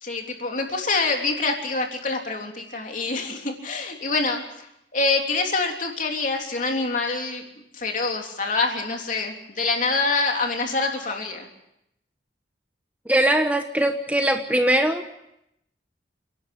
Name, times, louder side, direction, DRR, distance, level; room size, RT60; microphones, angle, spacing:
voice 1, 0.0-4.7 4.9-7.4 7.7-11.5, left 3 dB, 45° left, 2 dB, 3.4 m, -26 dB
voice 2, 13.1-15.0, right 1 dB, 10° right, 6 dB, 1.1 m, -21 dB
29.5 x 11.5 x 8.4 m, 0.82 s
head